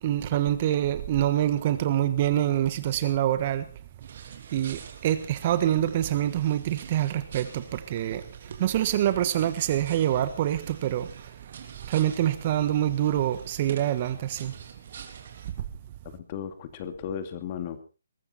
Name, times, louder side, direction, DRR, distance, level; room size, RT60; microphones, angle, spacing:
voice 1, 0.0-3.7 4.5-11.1 11.9-14.5, right 12 dB, 35° right, 1.4 m, -26 dB
sound 1, 4.0-15.5, right 6 dB, 55° right, 3.3 m, -46 dB
voice 2, 16.0-17.8, left 8 dB, 35° left, 2.5 m, -35 dB
22.0 x 13.5 x 4.3 m
hypercardioid pair, 150°, 0 cm